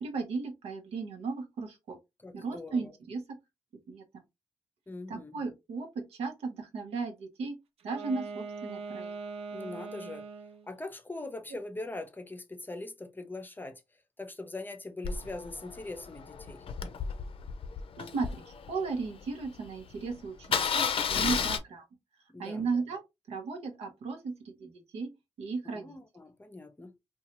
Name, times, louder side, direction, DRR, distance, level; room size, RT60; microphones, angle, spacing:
voice 1, 0.0-2.0 2.3-3.4 3.9-4.0 5.1-7.6 7.8-9.1 18.0-20.8 21.2-21.8 22.4-23.0 23.3-25.1 25.4-25.9, right 4 dB, 90° right, 0.8 m, -35 dB
voice 2, 2.2-2.9 4.9-5.4 9.5-10.3 10.7-13.8 14.2-16.7 21.1-21.6 22.3-22.7 25.6-26.9, left 2 dB, 20° left, 0.6 m, -42 dB
Wind instrument woodwind instrument, 7.8-10.7, right 4 dB, 70° right, 0.4 m, -41 dB
Engine starting, 15.0-19.2 19.7-19.8 20.0-20.1 20.4-21.6, left 6 dB, 65° left, 0.5 m, -32 dB
2.8 x 2.3 x 2.8 m
cardioid pair, 60°, 10 cm